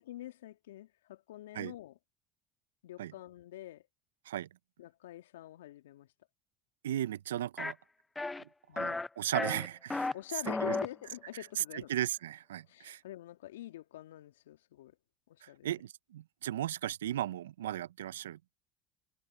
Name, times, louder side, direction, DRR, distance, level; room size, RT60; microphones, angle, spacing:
voice 1, 0.0-2.0 2.8-3.8 4.8-6.1 8.7-9.0 10.1-11.9 12.7-15.0 15.3-15.7, left 14 dB, 75° left, 2.2 m, -46 dB
voice 2, 6.8-7.8 8.4-10.1 10.6-10.7 11.9-13.0 15.4-18.4, right 12 dB, 80° right, 1.0 m, -36 dB
sound 1, 7.6-7.7 8.2-8.4 8.8-9.1 9.3-10.1 10.4-10.9, left 3 dB, 15° left, 0.4 m, -33 dB
hypercardioid pair, 70°, 0 cm